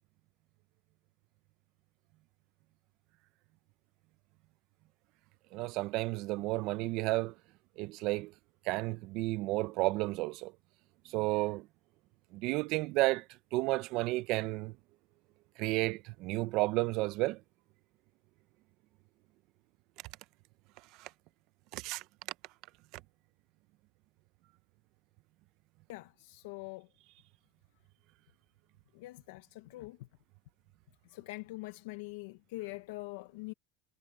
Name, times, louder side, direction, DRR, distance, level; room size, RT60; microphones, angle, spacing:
voice 1, 5.5-7.3 7.8-8.3 8.6-10.5 11.0-11.7 12.3-13.3 13.5-14.7 15.6-17.4 21.0-21.1 21.7-22.0, right 20 dB, 60° right, 0.7 m, -32 dB
voice 2, 25.9-26.9 28.9-30.0 31.1-33.5, left 21 dB, 80° left, 0.9 m, -44 dB
supercardioid pair, 120°, 0 cm